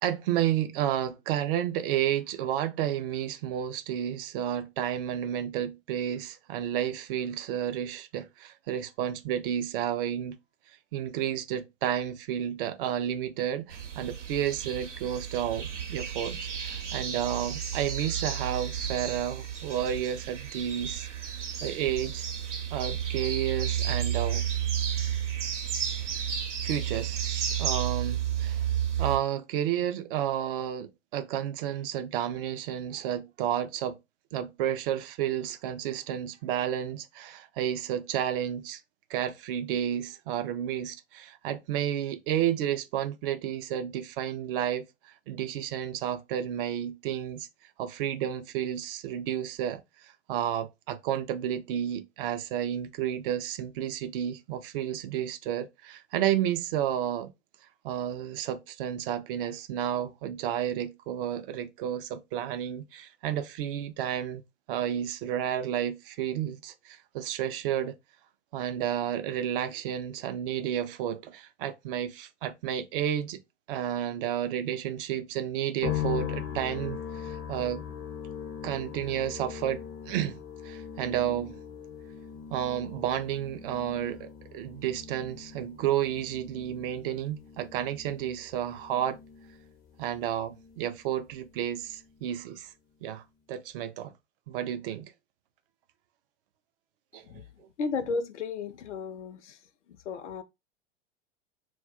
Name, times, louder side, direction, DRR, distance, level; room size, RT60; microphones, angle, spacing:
voice 1, 0.0-10.4 10.7-21.1 21.6-22.2 22.7-24.5 26.6-28.7 29.0-34.0 34.3-38.8 39.1-47.5 47.8-57.3 57.8-64.4 64.7-67.9 68.5-73.4 73.7-77.8 78.6-81.6 82.5-89.2 90.0-92.7 93.0-94.1 94.5-95.1 97.1-97.4, right 10 dB, 50° right, 0.5 m, -31 dB
sound 1, 13.7-29.2, right 9 dB, 80° right, 0.7 m, -32 dB
sound 2, 75.8-91.1 91.3-92.2, left 9 dB, 30° left, 0.5 m, -40 dB
voice 2, 97.8-99.6 100.1-100.4, left 4 dB, 80° left, 0.5 m, -33 dB
2.2 x 2.2 x 3.5 m
figure-of-eight pair, 90°, 35 cm